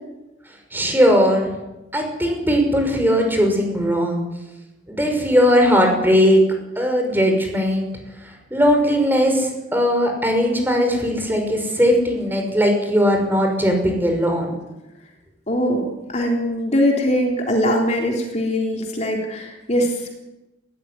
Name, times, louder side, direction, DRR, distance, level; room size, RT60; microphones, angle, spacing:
voice 1, 0.7-1.6 1.9-4.2 4.9-6.4 6.8-7.9 8.2-14.6, equal, 10° right, 3 dB, 5.6 m, -18 dB
voice 2, 15.5-20.1, equal, 35° left, 1 dB, 3.4 m, -21 dB
20.0 x 16.5 x 9.7 m, 0.98 s
head